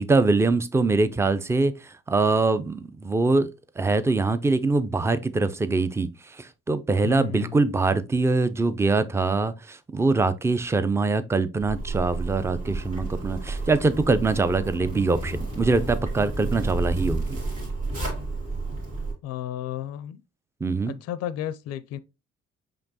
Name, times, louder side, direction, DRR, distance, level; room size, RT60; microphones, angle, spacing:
voice 1, 0.0-3.5 3.8-6.1 6.4-17.4 20.6-20.9, right 3 dB, 10° right, 0.4 m, -23 dB
voice 2, 7.0-7.8 19.2-20.2 20.9-22.0, left 12 dB, 55° left, 0.4 m, -33 dB
Zipper (clothing), 11.6-19.1, right 3 dB, 80° right, 2.1 m, -31 dB
5.1 x 3.0 x 2.7 m
hypercardioid pair, 55°, 30 cm